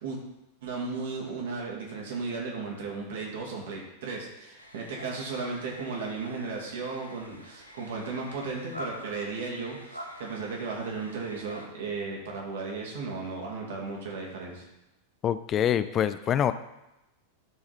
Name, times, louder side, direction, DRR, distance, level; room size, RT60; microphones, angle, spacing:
voice 1, 0.6-14.6, right 4 dB, 60° right, -1 dB, 2.5 m, -35 dB
sound 1, 4.6-11.7, equal, 90° left, 0.9 m, -46 dB
voice 2, 15.2-16.5, left 9 dB, 30° left, 13 dB, 0.5 m, -25 dB
12.5 x 4.8 x 4.2 m, 0.94 s
figure-of-eight pair, 90°, 0 cm